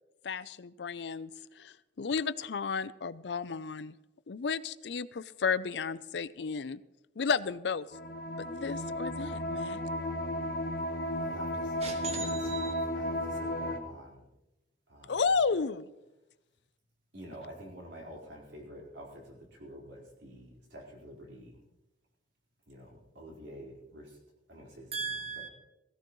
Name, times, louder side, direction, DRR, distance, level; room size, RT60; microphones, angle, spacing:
voice 1, 0.2-1.3 1.6-4.0 4.3-6.8 7.2-7.9 8.4-9.9 15.1-15.9, left 5 dB, 75° left, 0.5 m, -33 dB
sound 1, 7.9-13.8, left 1 dB, 55° left, 1.5 m, -34 dB
voice 2, 11.2-11.8 12.2-14.2 14.9-15.2 17.1-21.6 22.7-24.2 24.5-25.0 25.4-25.5, equal, 90° right, 4.3 m, -48 dB
voice 3, 11.8-12.7 24.9-25.5, right 5 dB, 35° right, 1.7 m, -37 dB
17.0 x 17.0 x 3.1 m
head